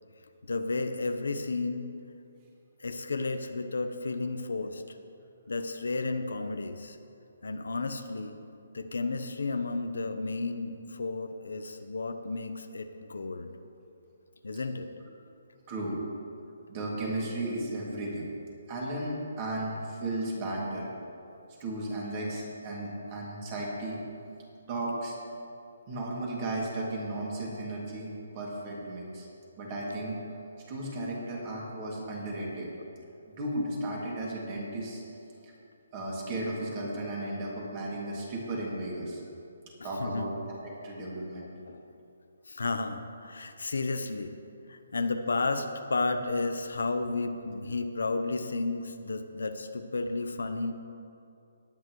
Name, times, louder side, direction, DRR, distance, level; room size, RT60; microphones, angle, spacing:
voice 1, 0.4-1.9 2.8-5.0 5.5-7.0 7.4-8.4 8.7-13.5 14.4-14.9 40.0-40.3 41.7-41.8 42.5-44.3 44.7-50.7, left 3 dB, 85° left, 8 dB, 0.9 m, -32 dB
voice 2, 15.7-16.0 16.7-18.3 18.7-20.9 21.6-24.1 24.6-25.2 25.9-29.3 29.6-30.2 30.7-32.7 33.3-35.0 35.4-35.5 35.9-39.2 39.8-41.5, right 1 dB, 25° right, -3 dB, 2.5 m, -35 dB
18.5 x 9.2 x 3.2 m, 2.6 s
hypercardioid pair, 165°, 0 cm